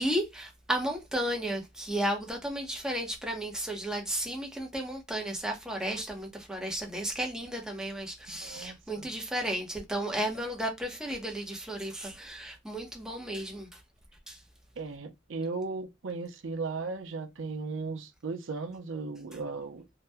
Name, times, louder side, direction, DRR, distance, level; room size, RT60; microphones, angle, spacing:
voice 1, 0.0-13.8 14.3-14.4, right 1 dB, 5° right, 0.7 m, -33 dB
voice 2, 8.4-9.1 14.8-19.8, right 4 dB, 70° right, 0.6 m, -36 dB
2.7 x 2.2 x 3.3 m
head